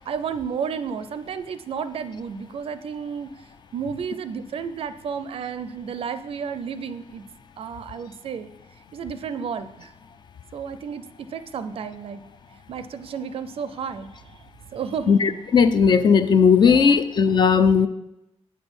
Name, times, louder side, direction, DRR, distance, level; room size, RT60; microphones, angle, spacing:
voice 1, 0.0-3.3 3.7-7.2 7.6-8.5 8.9-9.9 10.5-12.2 12.7-14.1 14.7-15.2 16.6-17.0, right 6 dB, 55° right, 12 dB, 0.5 m, -32 dB
voice 2, 15.1-17.9, left 6 dB, 40° left, 11 dB, 0.4 m, -17 dB
8.4 x 6.1 x 5.3 m, 0.90 s
wide cardioid pair, 165°, 12 cm